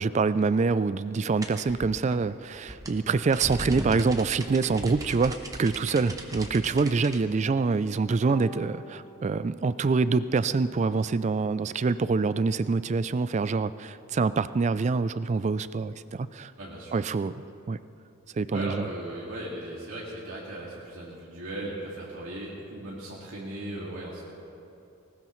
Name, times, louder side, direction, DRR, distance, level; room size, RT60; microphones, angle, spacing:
voice 1, 0.0-16.5 16.9-17.4 17.7-17.8 18.3-18.9, right 4 dB, 30° right, 15 dB, 0.3 m, -26 dB
sound 1, 1.4-7.2, right 1 dB, 15° right, 0.9 m, -38 dB
Bowed string instrument, 8.3-11.3, right 1 dB, 5° left, 1.5 m, -47 dB
voice 2, 16.6-17.0 18.5-24.2, right 1 dB, 70° right, -6 dB, 2.2 m, -37 dB
19.5 x 19.0 x 3.1 m, 2.7 s
head